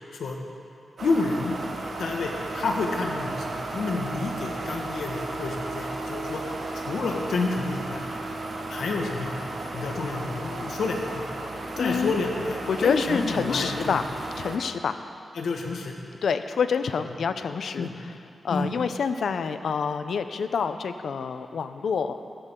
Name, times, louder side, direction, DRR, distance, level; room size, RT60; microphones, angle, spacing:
voice 1, 1.0-1.5 2.0-6.4 6.7-8.0 8.7-9.4 9.7-11.2 11.8-14.0 15.3-15.9 17.8-17.9 18.5-18.7, left 3 dB, 90° left, 1 dB, 1.6 m, -29 dB
sound 1, 1.0-14.6, right 2 dB, 55° right, 1.3 m, -34 dB
voice 2, 11.8-12.2 12.7-14.1 14.4-15.0 16.2-18.1 18.4-22.2, left 6 dB, 70° left, 10 dB, 0.6 m, -27 dB
16.0 x 15.0 x 3.8 m, 2.5 s
wide cardioid pair, 175°, 0 cm